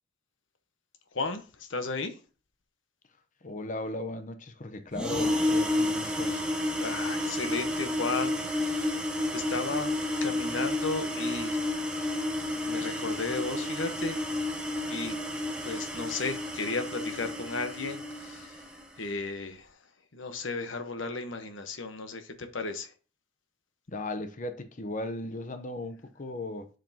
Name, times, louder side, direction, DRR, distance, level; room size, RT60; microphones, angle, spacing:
voice 1, 1.1-2.2 6.8-8.9 9.3-11.6 12.6-14.3 14.9-15.2 15.6-18.6 19.0-19.8 20.1-22.9, left 3 dB, 70° left, 1.1 m, -34 dB
voice 2, 3.4-6.4 23.9-26.7, left 2 dB, 40° left, 0.8 m, -37 dB
sound 1, 4.9-18.9, left 1 dB, 5° right, 1.2 m, -31 dB
7.7 x 7.4 x 2.8 m
head